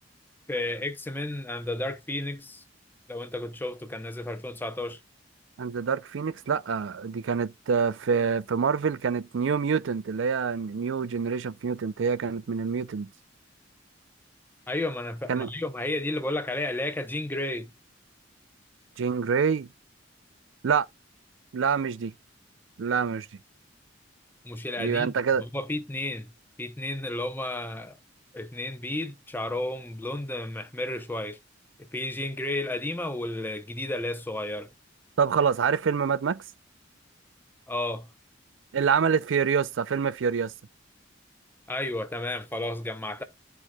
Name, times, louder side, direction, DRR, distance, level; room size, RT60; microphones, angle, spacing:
voice 1, 0.5-2.6 3.1-5.0 14.7-17.7 24.4-25.1 25.4-26.3 26.6-28.0 28.3-31.4 31.8-34.7 37.7-38.1 41.7-43.2, left 1 dB, 10° left, 0.7 m, -32 dB
voice 2, 5.6-13.1 15.3-15.5 19.0-19.7 20.6-20.9 21.5-22.1 22.8-23.3 24.8-25.4 35.2-36.4 38.7-40.5, right 6 dB, 75° right, 0.4 m, -26 dB
12.0 x 4.6 x 2.2 m
head